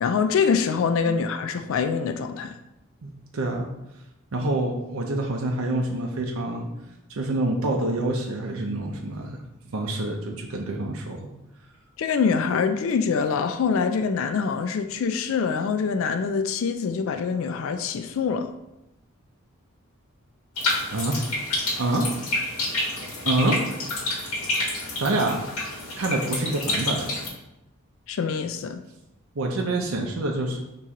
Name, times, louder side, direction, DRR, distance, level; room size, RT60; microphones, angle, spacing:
voice 1, 0.0-2.6 12.0-18.5 28.1-28.8, left 5 dB, 60° left, 8 dB, 0.3 m, -24 dB
voice 2, 3.0-3.7 4.3-6.7 7.1-9.4 9.7-11.3 20.9-21.2 21.8-22.1 23.2-23.6 25.0-25.4 26.0-27.2 29.4-30.6, right 2 dB, 65° right, 1 dB, 0.6 m, -26 dB
sound 1, 20.6-27.3, left 2 dB, 85° left, 1.4 m, -29 dB
4.3 x 3.0 x 3.6 m, 0.88 s
head